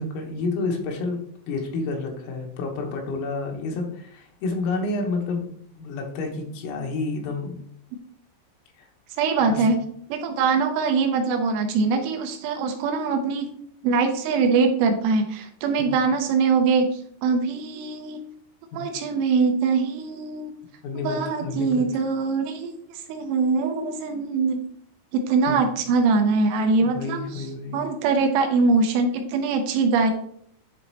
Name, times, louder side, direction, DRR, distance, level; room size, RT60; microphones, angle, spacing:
voice 1, 0.0-5.5 5.8-7.6 8.8-8.9 9.4-9.6 15.8-15.9 18.7-18.9 20.8-21.9 25.5-25.6 26.8-27.8, left 3 dB, 85° left, 1 dB, 3.8 m, -30 dB
voice 2, 9.2-9.8 10.1-13.5 13.8-16.9 17.2-18.2 18.7-20.5 21.0-22.8 23.1-24.6 25.1-27.5 27.7-30.1, right 4 dB, 85° right, 4 dB, 3.0 m, -22 dB
10.5 x 4.1 x 3.0 m, 0.67 s
omnidirectional pair, 5.9 m